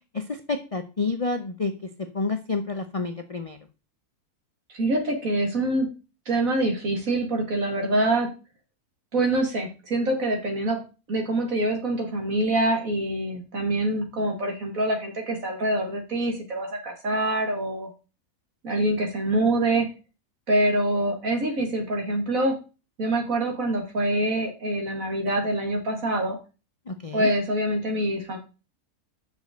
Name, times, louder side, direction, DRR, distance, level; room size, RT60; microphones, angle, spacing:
voice 1, 0.1-3.6 26.9-27.3, left 3 dB, 45° left, 7 dB, 0.4 m, -29 dB
voice 2, 4.7-5.9 6.3-8.3 9.1-10.8 11.1-17.9 18.6-19.9 20.5-22.5 23.0-26.4 27.1-28.4, right 1 dB, 65° right, 3 dB, 2.4 m, -25 dB
6.5 x 5.2 x 6.5 m, 0.32 s
omnidirectional pair, 1.6 m